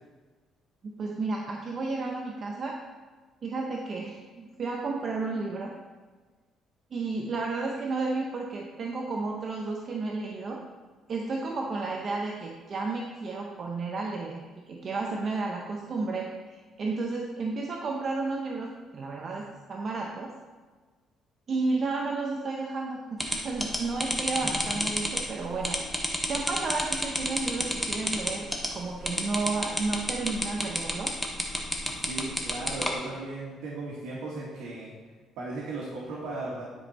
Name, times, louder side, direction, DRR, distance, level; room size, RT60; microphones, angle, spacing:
voice 1, 0.8-2.8 3.4-5.7 6.9-10.6 11.1-14.4 14.7-20.3 21.5-31.1, right 3 dB, 35° right, 0 dB, 0.7 m, -32 dB
sound 1, 23.2-32.9, left 1 dB, 5° left, 0.9 m, -30 dB
voice 2, 31.8-34.9 35.4-36.6, right 2 dB, 85° right, -6 dB, 1.7 m, -36 dB
9.7 x 5.3 x 4.2 m, 1.4 s
cardioid pair, 165°, 0 cm